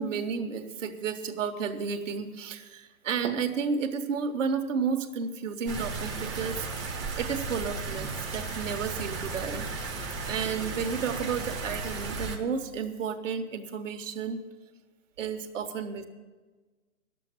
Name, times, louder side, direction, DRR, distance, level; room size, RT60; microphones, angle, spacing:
voice 1, 0.0-6.7 7.2-9.7 10.3-14.4 15.2-16.0, right 6 dB, 55° right, 6 dB, 1.3 m, -32 dB
sound 1, 5.7-12.4, right 4 dB, 10° right, 0.5 m, -35 dB
10.5 x 7.5 x 9.1 m, 1.3 s
hypercardioid pair, 140°, 44 cm